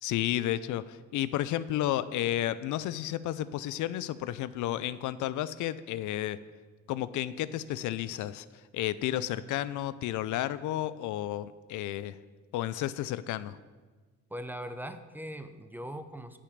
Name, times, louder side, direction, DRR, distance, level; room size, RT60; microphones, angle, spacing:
voice 1, 0.0-6.4 6.9-8.5 8.7-12.2 12.5-13.6, left 13 dB, 80° left, 16 dB, 0.5 m, -32 dB
voice 2, 14.3-16.4, equal, 5° right, 9 dB, 0.7 m, -40 dB
10.0 x 5.1 x 7.1 m, 1.3 s
cardioid pair, 90°, 30 cm